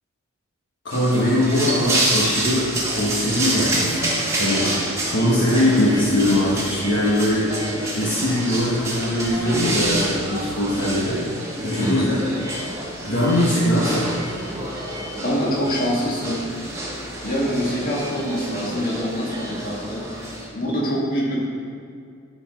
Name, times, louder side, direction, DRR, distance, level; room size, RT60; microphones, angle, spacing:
voice 1, 0.8-11.2 11.6-12.2 13.0-14.1, left 1 dB, 60° left, -7 dB, 1.4 m, -21 dB
sound 1, 0.9-20.5, right 1 dB, 15° right, 1.5 m, -27 dB
voice 2, 11.8-12.1 15.2-16.4 17.2-21.4, equal, 40° left, -5 dB, 2.1 m, -25 dB
11.0 x 5.0 x 5.7 m, 2.3 s
head